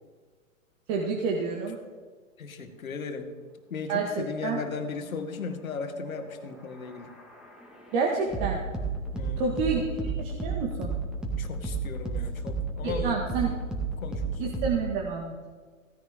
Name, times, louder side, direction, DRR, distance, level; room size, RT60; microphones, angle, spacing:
voice 1, 0.9-1.8 3.9-4.6 7.9-8.6 9.4-10.9 12.8-13.6 14.4-15.3, right 4 dB, 40° right, 0 dB, 1.8 m, -29 dB
voice 2, 2.4-3.3 3.7-7.1 9.1-9.5 11.4-13.2 14.0-14.6, left 5 dB, 85° left, 7 dB, 1.7 m, -36 dB
sound 1, 6.3-14.9, right 3 dB, ahead, 1.8 m, -33 dB
16.0 x 10.0 x 3.7 m, 1.5 s
hypercardioid pair, 130°, 40 cm